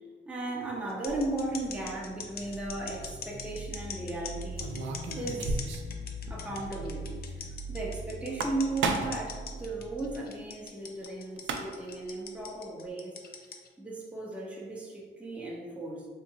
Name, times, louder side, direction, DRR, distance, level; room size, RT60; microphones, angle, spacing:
voice 1, 0.3-5.6 6.3-13.2 13.8-16.1, right 2 dB, 5° right, -4 dB, 0.6 m, -36 dB
sound 1, 0.9-13.7, left 6 dB, 50° left, 0.5 m, -42 dB
sound 2, 1.1-10.2, right 1 dB, 40° right, 0.8 m, -42 dB
sound 3, 2.7-3.1 4.6-6.0 6.3-6.4 6.7-6.8 8.2-9.3 11.1-11.2 11.4-11.9, right 4 dB, 70° right, 0.4 m, -32 dB
3.7 x 2.5 x 2.8 m, 1.5 s
cardioid pair, 90°, 20 cm